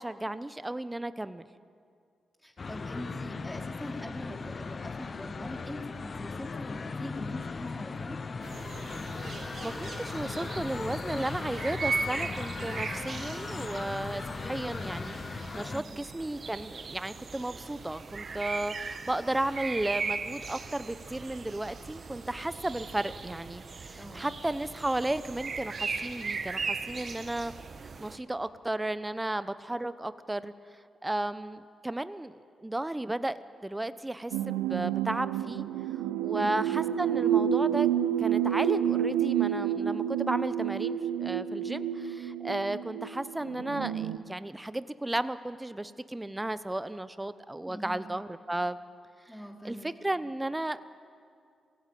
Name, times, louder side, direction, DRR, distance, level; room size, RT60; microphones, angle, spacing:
voice 1, 0.0-1.4 9.6-27.5 28.0-35.7 36.2-37.9 38.2-48.8 49.6-50.8, right 1 dB, 15° right, 14 dB, 0.9 m, -34 dB
voice 2, 2.4-8.2 15.7-16.1 24.0-24.3 36.3-36.8 47.6-48.1 49.3-49.9, equal, 10° left, 1 dB, 4.3 m, -42 dB
sound 1, 2.6-15.8, left 4 dB, 45° left, 0.6 m, -38 dB
sound 2, 8.4-28.2, right 4 dB, 55° right, 1.5 m, -38 dB
sound 3, 34.3-44.2, right 10 dB, 90° right, 0.6 m, -29 dB
21.5 x 16.0 x 9.1 m, 2.3 s
hypercardioid pair, 40°, 0 cm